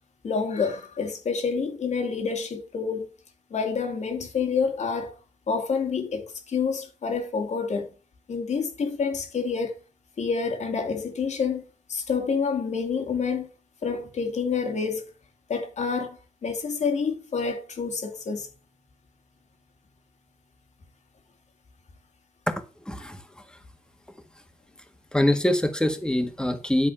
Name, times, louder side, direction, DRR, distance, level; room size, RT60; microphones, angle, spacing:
voice 1, 0.2-3.1 3.5-5.1 5.5-7.9 8.3-9.7 10.2-11.6 11.9-13.5 13.8-15.0 15.5-18.5, left 5 dB, 70° left, 2.4 m, -28 dB
voice 2, 22.5-23.2 25.1-26.9, left 1 dB, 5° left, 1.6 m, -24 dB
10.0 x 4.2 x 5.9 m
cardioid pair, 65°, 13 cm